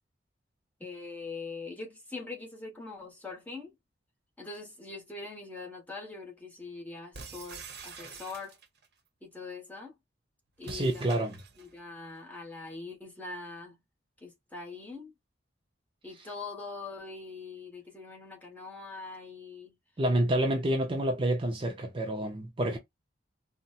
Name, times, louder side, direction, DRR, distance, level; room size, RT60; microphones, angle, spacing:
voice 1, 0.8-3.7 4.4-8.6 9.2-10.0 10.6-11.2 11.6-13.8 14.2-15.1 16.0-19.8, left 3 dB, 10° left, 1.0 m, -42 dB
sound 1, 7.1-8.9 10.6-11.7, right 5 dB, 60° right, 0.9 m, -46 dB
voice 2, 10.7-11.3 20.0-22.8, right 1 dB, 25° right, 0.5 m, -28 dB
4.0 x 2.1 x 2.3 m
head